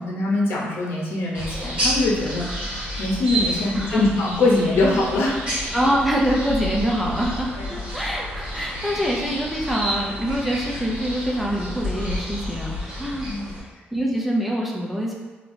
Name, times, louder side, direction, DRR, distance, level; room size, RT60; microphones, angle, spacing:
voice 1, 0.0-2.4 3.0-5.4 7.6-7.8 13.2-13.4, left 2 dB, 85° left, -3 dB, 0.7 m, -22 dB
sound 1, 1.3-13.6, equal, 30° right, 1.3 m, -30 dB
voice 2, 5.7-13.3 13.9-15.1, equal, 5° right, -3 dB, 0.4 m, -25 dB
3.3 x 2.8 x 2.6 m, 1.3 s
cardioid pair, 140°, 4 cm